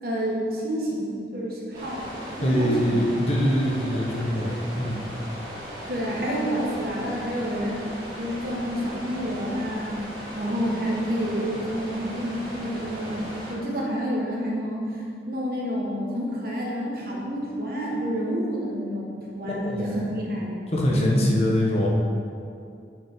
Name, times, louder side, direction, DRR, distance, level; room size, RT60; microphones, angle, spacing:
voice 1, 0.0-3.0 3.9-4.0 5.9-7.8 8.2-10.0 10.3-13.2 13.5-15.0 15.3-20.6 20.9-21.3, equal, 55° right, -3 dB, 1.4 m, -29 dB
sound 1, 1.7-13.5, equal, 25° right, 1.8 m, -37 dB
voice 2, 2.4-5.0 19.6-20.0 20.7-21.9, equal, 35° left, -3 dB, 1.0 m, -23 dB
9.0 x 5.2 x 3.6 m, 2.4 s
head